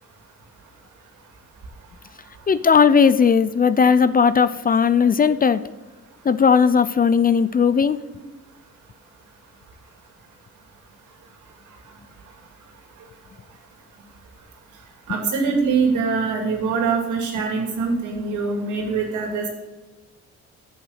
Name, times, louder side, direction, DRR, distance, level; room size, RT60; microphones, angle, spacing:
voice 1, 2.5-5.6 6.2-8.0, left 6 dB, 30° left, 14 dB, 0.5 m, -17 dB
voice 2, 15.1-19.5, right 5 dB, 80° right, 2 dB, 2.6 m, -23 dB
7.9 x 7.3 x 6.4 m, 1.1 s
cardioid pair, 90°, 30 cm